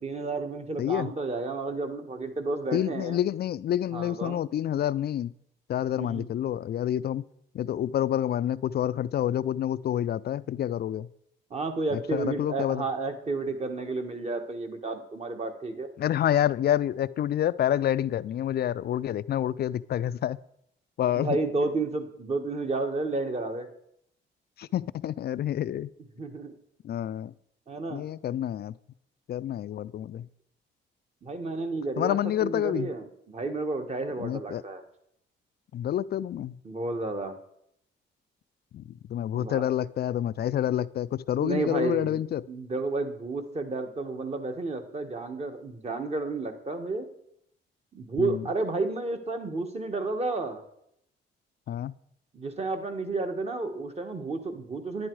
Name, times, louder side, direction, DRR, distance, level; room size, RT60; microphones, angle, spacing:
voice 1, 0.0-3.2 3.9-4.4 6.0-6.3 11.5-15.9 21.1-23.7 26.2-26.6 27.7-28.0 31.2-34.8 36.6-37.4 39.3-39.6 41.4-42.2 42.5-47.1 47.9-50.6 52.3-55.1, right 3 dB, 30° right, 6 dB, 1.6 m, -31 dB
voice 2, 0.8-1.1 2.7-5.3 5.7-7.3 7.5-11.1 11.9-12.8 16.0-20.4 21.0-21.4 24.6-25.9 26.8-27.3 27.9-28.8 29.3-30.3 32.0-32.9 34.2-34.6 35.7-36.6 38.7-42.4 48.2-48.5 51.7-51.9, left 11 dB, 55° left, 17 dB, 0.4 m, -28 dB
10.5 x 10.5 x 4.7 m, 0.74 s
cardioid pair, 90°, 20 cm